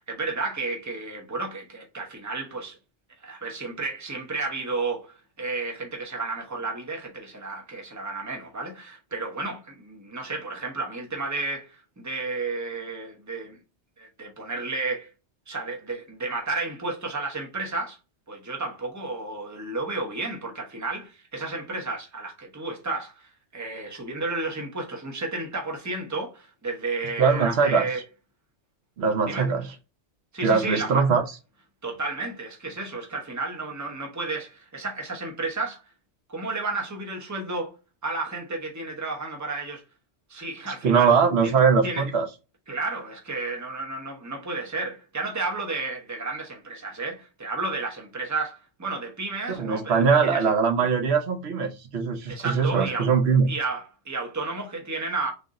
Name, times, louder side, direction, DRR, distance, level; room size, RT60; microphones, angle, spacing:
voice 1, 0.0-2.8 3.2-13.6 14.0-15.1 15.5-18.0 18.3-28.0 29.3-29.5 30.3-31.0 31.8-35.8 36.3-37.7 38.0-39.8 40.3-41.1 41.4-41.5 41.8-42.0 42.7-50.4 52.3-53.1 53.5-55.3, right 3 dB, 15° right, 0.9 m, -32 dB
voice 2, 27.2-27.8 29.0-29.7 30.4-31.2 40.8-42.2 49.5-53.5, right 5 dB, 65° right, 1.0 m, -21 dB
3.9 x 2.6 x 3.6 m
omnidirectional pair, 1.2 m